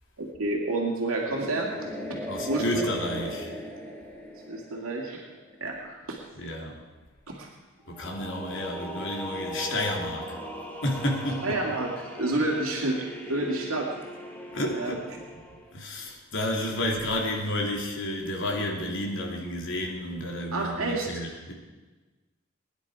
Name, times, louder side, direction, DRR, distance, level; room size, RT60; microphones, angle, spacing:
voice 1, 0.2-1.9 2.5-2.9 4.5-5.2 5.6-6.2 7.3-7.5 11.4-13.9 14.7-15.0 20.5-21.2, right 2 dB, 80° right, -1 dB, 2.4 m, -29 dB
sound 1, 1.2-5.8 7.9-15.7, equal, 10° left, 2.3 m, -39 dB
voice 2, 2.3-3.5 6.4-6.8 7.9-10.4 10.8-11.5 12.3-12.4 14.5-15.0 15.7-21.5, left 1 dB, 65° left, 0 dB, 2.9 m, -31 dB
22.5 x 10.5 x 4.8 m, 1.3 s
head